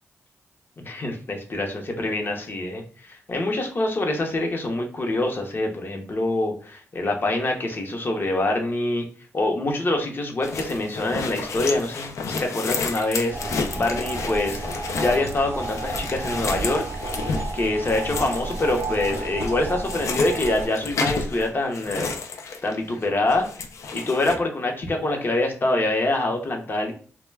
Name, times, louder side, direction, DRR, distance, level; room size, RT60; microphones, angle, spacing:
voice 1, 0.8-2.8 3.1-9.0 9.3-14.6 15.0-16.8 17.5-22.1 22.6-23.5 23.9-26.9, left 2 dB, 45° left, 3 dB, 0.7 m, -25 dB
sound 1, 10.4-23.0 23.3-24.3, left 4 dB, 75° left, 0.4 m, -31 dB
sound 2, 13.3-20.7, right 3 dB, 55° right, 0.4 m, -32 dB
2.2 x 2.1 x 3.2 m, 0.43 s
cardioid pair, 70°, 5 cm